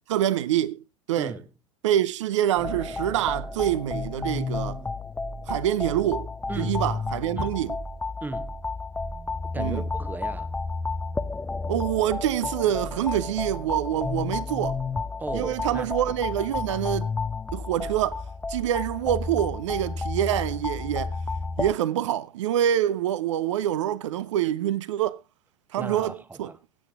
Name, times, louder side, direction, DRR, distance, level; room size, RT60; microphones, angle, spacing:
voice 1, 0.1-1.3 1.8-4.8 5.5-6.3 6.6-7.8 9.6-9.8 11.7-14.8 15.3-17.1 17.5-18.2 18.5-21.2 21.6-25.2 25.7-26.5, right 11 dB, 65° right, 0.8 m, -26 dB
sound 1, 2.6-21.7, left 3 dB, 10° left, 0.6 m, -31 dB
voice 2, 6.5-6.8 7.4-7.6 8.2-8.6 9.5-10.6 15.2-16.5 25.8-26.6, right 2 dB, 10° right, 1.0 m, -37 dB
23.0 x 8.5 x 2.4 m
figure-of-eight pair, 85°, 17 cm